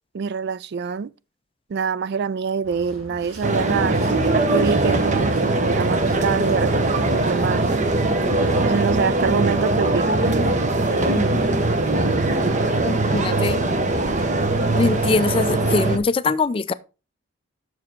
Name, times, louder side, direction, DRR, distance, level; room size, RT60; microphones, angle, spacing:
voice 1, 0.1-1.1 1.7-7.8 8.6-10.4, right 5 dB, 50° right, 0.3 m, -25 dB
sound 1, 2.6-8.7, right 2 dB, 90° right, 3.3 m, -42 dB
sound 2, 3.4-16.0, right 2 dB, 35° right, 1.0 m, -21 dB
voice 2, 12.8-13.6 14.7-16.7, left 3 dB, 25° left, 0.4 m, -22 dB
7.5 x 6.2 x 4.5 m
head